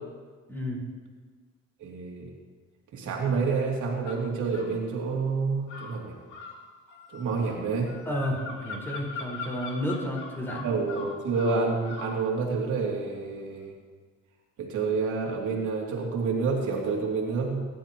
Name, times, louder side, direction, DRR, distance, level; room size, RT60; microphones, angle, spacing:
voice 1, 0.5-0.8 7.4-7.5 8.0-10.7, equal, 5° left, -3 dB, 4.9 m, -31 dB
voice 2, 1.8-2.3 2.9-6.2 7.1-7.9 10.6-13.7 14.6-17.7, right 4 dB, 75° right, -2 dB, 2.8 m, -28 dB
sound 1, 4.0-4.7 5.7-12.2, left 4 dB, 80° left, 2.4 m, -41 dB
22.0 x 11.5 x 3.0 m, 1.5 s
cardioid pair, 90°, 30 cm